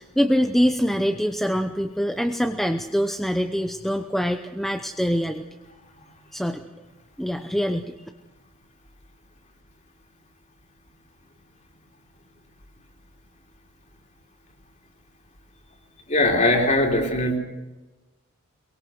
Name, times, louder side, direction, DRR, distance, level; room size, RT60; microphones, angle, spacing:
voice 1, 0.0-5.4 6.3-6.6 7.2-7.9, equal, ahead, 5 dB, 0.8 m, -24 dB
voice 2, 16.1-17.4, left 1 dB, 35° left, 2 dB, 3.6 m, -20 dB
23.5 x 22.5 x 6.5 m, 1.1 s
head